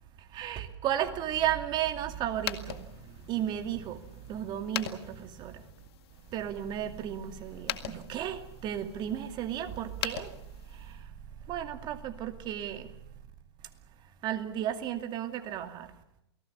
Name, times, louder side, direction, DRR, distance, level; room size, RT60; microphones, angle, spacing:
voice 1, 0.2-5.7 6.3-10.4 10.7-13.0 13.6-13.7 14.2-15.9, right 10 dB, 30° right, 2.4 m, -34 dB
sound 1, 2.3-11.0, left 12 dB, 60° left, 2.0 m, -42 dB
29.0 x 19.0 x 7.3 m
hypercardioid pair, 130°, 15 cm